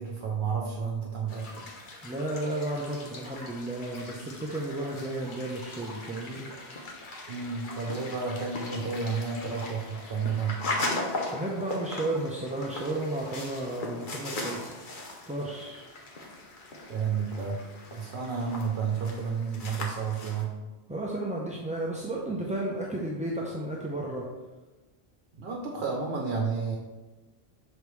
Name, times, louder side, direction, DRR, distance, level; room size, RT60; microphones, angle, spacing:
voice 1, 0.0-1.7 7.3-10.6 16.9-17.6 17.9-20.5 25.4-26.8, right 5 dB, 70° right, 0 dB, 1.0 m, -31 dB
sound 1, 1.3-20.4, left 2 dB, 50° left, 1.1 m, -39 dB
voice 2, 2.0-6.5 11.3-14.8 15.3-15.9 20.9-24.2, right 1 dB, 10° right, -3 dB, 0.5 m, -33 dB
6.5 x 5.1 x 3.2 m, 1.2 s
omnidirectional pair, 1.1 m